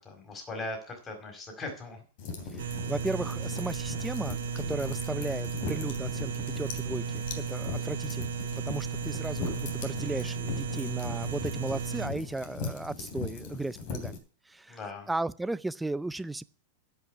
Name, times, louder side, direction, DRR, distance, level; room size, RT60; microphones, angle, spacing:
voice 1, 0.0-2.0 14.7-15.1, left 2 dB, 20° left, 2 dB, 4.9 m, -39 dB
sound 1, 2.2-14.2, left 4 dB, 55° left, 3.2 m, -39 dB
voice 2, 2.5-8.3 8.7-14.2 14.5-14.8 15.1-16.4, right 2 dB, 5° right, 16 dB, 0.5 m, -35 dB
sound 2, 2.6-12.1, right 6 dB, 85° right, 1.4 m, -34 dB
11.0 x 5.8 x 8.6 m, 0.40 s
hypercardioid pair, 110°, 0 cm